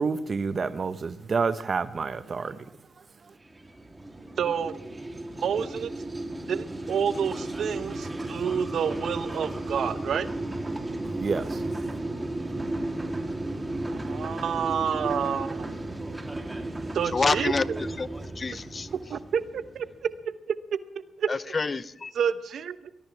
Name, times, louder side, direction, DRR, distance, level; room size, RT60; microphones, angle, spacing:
voice 1, 0.0-3.3 11.0-11.8, right 4 dB, 50° right, 12 dB, 1.2 m, -30 dB
sound 1, 3.4-20.0, right 2 dB, 20° right, 3.1 m, -34 dB
voice 2, 4.4-4.8 5.4-5.9 6.5-10.3 14.0-15.7 16.9-17.8 19.1-20.1 20.9-21.3 22.1-22.9, right 7 dB, 75° right, 13 dB, 0.9 m, -29 dB
voice 3, 17.1-17.6 18.0-18.1 18.3-18.9 21.3-22.1, left 4 dB, 40° left, 17 dB, 0.7 m, -27 dB
20.5 x 18.5 x 3.5 m, 0.89 s
cardioid pair, 70°, 0 cm